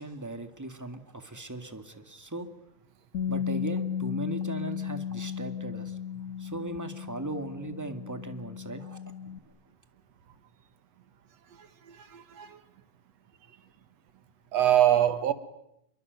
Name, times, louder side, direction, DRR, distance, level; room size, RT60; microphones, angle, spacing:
voice 1, 0.0-2.5 3.3-5.9 6.4-9.0 9.2-9.4, right 2 dB, 10° right, 1.4 m, -38 dB
Bass guitar, 3.1-9.4, left 8 dB, 35° left, 1.9 m, -35 dB
voice 2, 11.6-12.6 14.5-15.3, right 11 dB, 65° right, 2.5 m, -24 dB
28.0 x 23.0 x 9.4 m
omnidirectional pair, 3.3 m